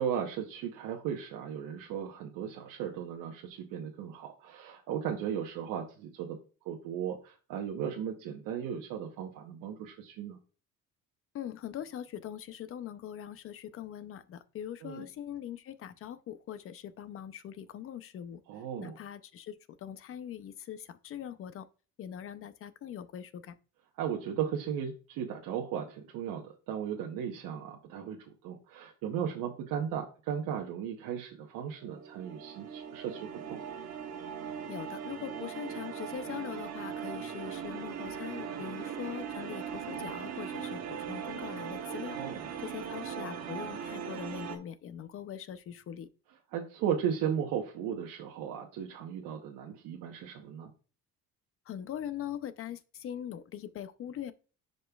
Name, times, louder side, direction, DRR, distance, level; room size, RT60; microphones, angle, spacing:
voice 1, 0.0-6.4 6.6-10.4 14.8-15.1 18.5-19.0 24.0-33.6 34.0-34.1 38.6-38.8 42.1-42.5 46.5-50.7, right 8 dB, 85° right, 1.0 m, -36 dB
voice 2, 11.3-18.4 18.8-21.7 22.0-23.5 34.7-42.2 42.6-46.1 51.7-54.3, left 10 dB, 45° left, 0.6 m, -42 dB
sound 1, 31.8-44.6, right 7 dB, 50° right, 1.3 m, -39 dB
10.5 x 5.2 x 2.3 m
cardioid pair, 150°, 32 cm